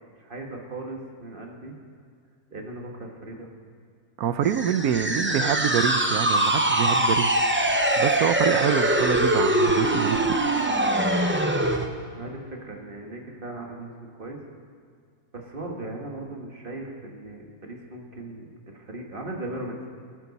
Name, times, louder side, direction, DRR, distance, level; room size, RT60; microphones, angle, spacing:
voice 1, 0.2-1.8 2.5-3.5 4.5-4.9 5.3-5.5 12.1-14.4 15.3-19.9, right 2 dB, 35° right, 1 dB, 1.8 m, -38 dB
voice 2, 4.2-7.3 8.0-10.4, right 9 dB, 75° right, 11 dB, 1.2 m, -26 dB
sound 1, 4.4-11.9, right 1 dB, 15° right, 0.4 m, -23 dB
20.5 x 12.0 x 4.1 m, 2.2 s
omnidirectional pair, 1.6 m